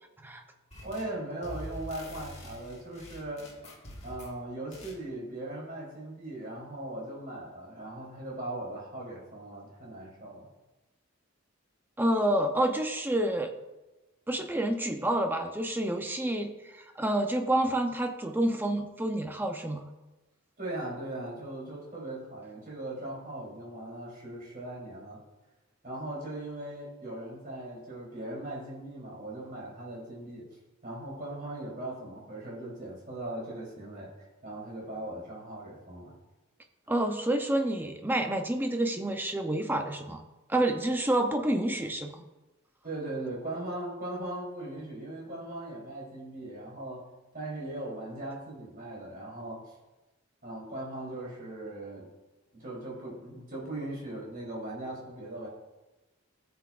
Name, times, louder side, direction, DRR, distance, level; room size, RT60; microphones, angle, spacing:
sound 1, 0.7-1.2 1.4-4.4 4.7-5.0, equal, 30° left, 1.8 m, -45 dB
voice 1, 0.8-3.5 4.0-10.5 20.6-25.2 25.8-30.5 30.8-36.1 42.8-47.0 47.3-49.7 50.4-52.1 52.5-55.5, right 1 dB, 40° right, -5 dB, 3.5 m, -39 dB
voice 2, 12.0-13.5 14.3-19.9 36.9-40.2 40.5-42.2, right 1 dB, 10° right, 4 dB, 0.7 m, -28 dB
16.0 x 7.1 x 2.5 m, 1.1 s
head